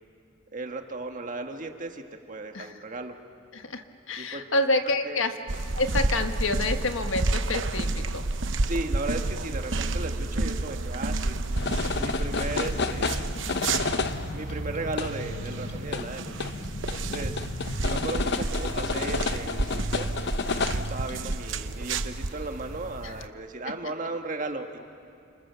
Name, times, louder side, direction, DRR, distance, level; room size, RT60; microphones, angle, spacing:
voice 1, 0.5-3.1 4.2-4.4 5.0-5.2 8.6-13.2 14.3-17.4 17.9-20.1 20.5-24.9, right 2 dB, 40° right, 5 dB, 1.7 m, -36 dB
voice 2, 3.5-5.4 5.7-8.2 23.0-23.1 23.8-23.9, left 2 dB, 85° left, 7 dB, 1.5 m, -28 dB
sound 1, 5.5-23.3, right 2 dB, 70° right, 0.9 m, -30 dB
sound 2, 11.6-21.3, left 4 dB, 60° left, 0.8 m, -31 dB
30.0 x 26.0 x 7.0 m, 2.6 s
head